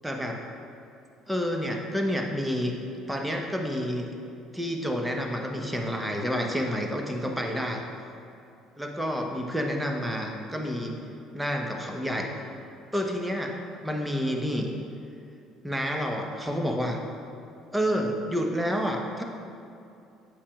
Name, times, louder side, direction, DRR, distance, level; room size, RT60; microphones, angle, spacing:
voice 1, 0.0-0.4 1.3-2.7 3.1-4.1 4.5-7.8 8.8-11.0 11.3-12.3 12.9-14.7 15.6-17.0 17.7-19.2, equal, 5° right, 2 dB, 1.1 m, -29 dB
8.5 x 8.3 x 2.5 m, 2.5 s
hypercardioid pair, 55°, 0 cm